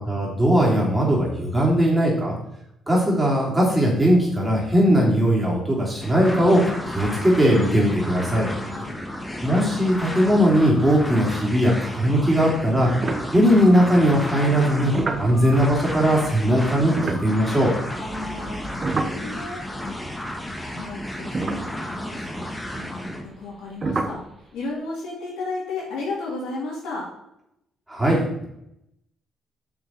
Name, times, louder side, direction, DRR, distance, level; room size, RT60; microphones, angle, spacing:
voice 1, 0.1-2.3 2.9-8.5 9.4-12.9 13.3-14.9 15.2-17.7 27.9-28.4, equal, 10° right, -4 dB, 3.2 m, -19 dB
sound 1, 6.0-23.2, left 1 dB, 10° left, 1.3 m, -33 dB
voice 2, 8.3-9.0 18.0-27.1, left 3 dB, 85° left, -4 dB, 3.0 m, -34 dB
sound 2, 13.0-14.0 14.6-19.9 20.2-20.3 20.9-21.0 21.3-22.4 23.8-24.3, right 3 dB, 35° right, 0.8 m, -31 dB
6.5 x 6.5 x 4.4 m, 0.80 s
cardioid pair, 90°, 0 cm